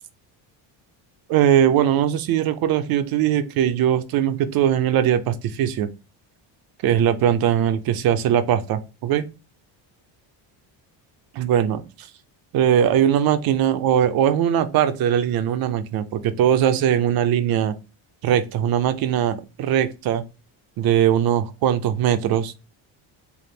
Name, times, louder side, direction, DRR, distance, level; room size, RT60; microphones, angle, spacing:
voice 1, 1.3-5.9 6.8-9.3 11.3-12.1 12.5-17.8 18.2-20.2 20.8-22.5, right 10 dB, 50° right, 0.5 m, -20 dB
3.5 x 2.5 x 3.7 m
cardioid pair, 165°, 47 cm